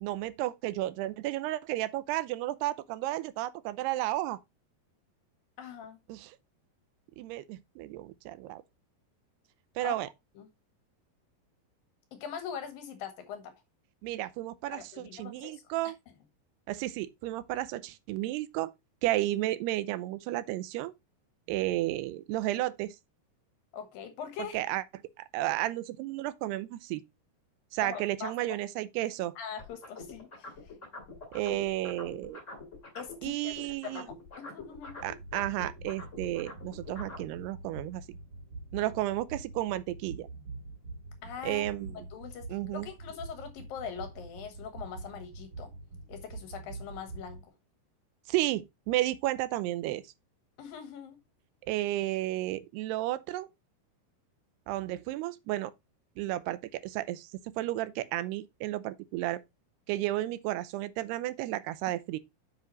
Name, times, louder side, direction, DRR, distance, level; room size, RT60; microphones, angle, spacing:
voice 1, 0.0-4.4 6.1-6.4 7.2-8.6 9.8-10.1 14.0-16.0 16.7-18.7 19.0-20.9 21.5-23.0 24.4-24.8 25.2-27.0 27.7-29.4 31.3-32.4 33.2-34.1 35.0-38.1 38.7-40.3 41.4-42.0 42.5-42.9 48.3-50.0 51.7-53.5 54.7-55.7 56.2-59.4 59.9-62.2, right 16 dB, 90° right, 2.7 m, -32 dB
voice 2, 5.6-6.0 9.8-10.0 10.4-10.5 12.1-13.5 14.7-15.6 23.7-24.6 27.8-28.3 29.4-30.7 33.0-35.0 38.8-38.9 41.2-41.6 41.9-42.5 42.7-45.7 46.1-47.5 50.6-51.2, left 7 dB, 70° left, 2.8 m, -42 dB
sound 1, 29.6-33.3 33.5-37.3, left 3 dB, 25° left, 1.9 m, -45 dB
sound 2, 34.8-47.5, right 2 dB, 35° right, 3.2 m, -45 dB
7.7 x 7.5 x 3.0 m
omnidirectional pair, 4.7 m